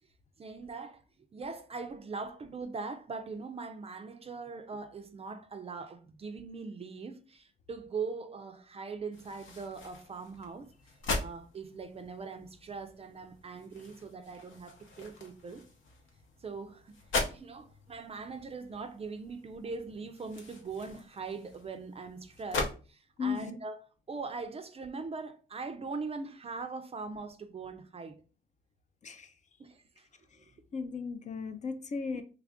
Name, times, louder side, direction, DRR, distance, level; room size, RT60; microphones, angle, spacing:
voice 1, 0.4-1.0 1.3-10.7 11.2-15.7 16.4-17.0 17.3-23.8 24.1-28.2 29.6-30.1 30.4-30.5, right 4 dB, 30° right, 0.4 m, -41 dB
sound 1, 9.1-22.7, left 3 dB, 75° left, 0.9 m, -41 dB
voice 2, 23.2-23.5 29.0-29.3 30.3-32.2, left 5 dB, 35° left, 0.5 m, -36 dB
3.2 x 2.4 x 3.5 m
cardioid pair, 90°, 20 cm